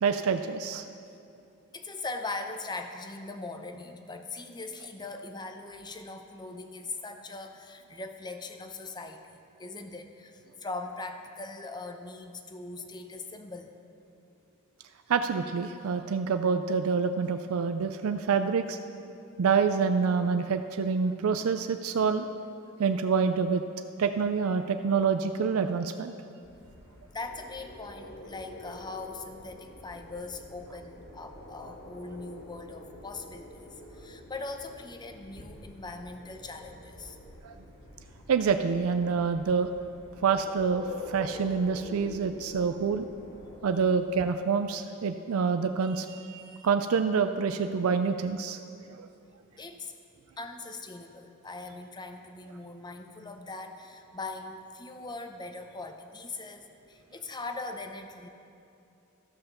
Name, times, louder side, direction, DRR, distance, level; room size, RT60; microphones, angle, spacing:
voice 1, 0.0-0.8 15.1-18.8 19.4-22.3 22.8-23.6 24.0-26.1 37.4-37.5 38.3-39.7 40.2-43.1 43.6-48.6 49.0-49.1, right 5 dB, 85° right, 8 dB, 0.4 m, -27 dB
voice 2, 1.7-13.8 27.1-37.2 49.6-49.9 50.4-58.3, left 3 dB, 20° left, 6 dB, 0.6 m, -41 dB
sound 1, 26.4-43.6, left 2 dB, 65° left, 1.8 m, -47 dB
13.0 x 5.7 x 6.7 m, 2.7 s
head